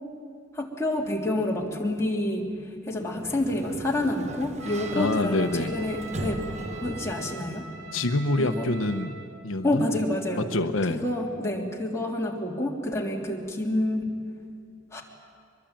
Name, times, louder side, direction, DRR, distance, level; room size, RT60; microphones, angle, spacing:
voice 1, 0.5-2.5 2.9-6.4 6.8-7.7 8.4-8.7 9.6-10.5 10.9-14.1 14.9-15.0, left 1 dB, 15° left, -2 dB, 3.1 m, -28 dB
Sliding door, 2.9-7.8, right 1 dB, 35° right, 1.3 m, -39 dB
Trumpet, 4.6-9.3, right 4 dB, 85° right, 3.1 m, -42 dB
voice 2, 4.9-5.8 7.9-9.2 9.4-9.8 10.5-11.0, left 2 dB, 80° left, 7 dB, 1.0 m, -26 dB
23.5 x 22.5 x 9.0 m, 2.3 s
head